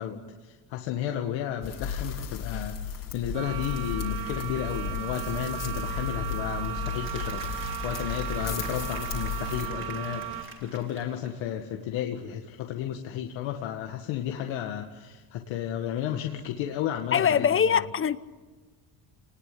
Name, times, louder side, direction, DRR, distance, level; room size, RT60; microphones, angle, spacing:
voice 1, 0.0-17.8, left 10 dB, 70° left, 2.0 m, -33 dB
sound 1, 1.6-9.7, left 6 dB, 45° left, 3.4 m, -35 dB
sound 2, 3.3-10.4, right 12 dB, 80° right, 3.6 m, -36 dB
Applause, 6.5-11.5, right 4 dB, 25° right, 3.8 m, -45 dB
voice 2, 17.1-18.2, left 7 dB, 25° left, 0.9 m, -22 dB
29.0 x 19.5 x 8.6 m
cardioid pair, 130°, 47 cm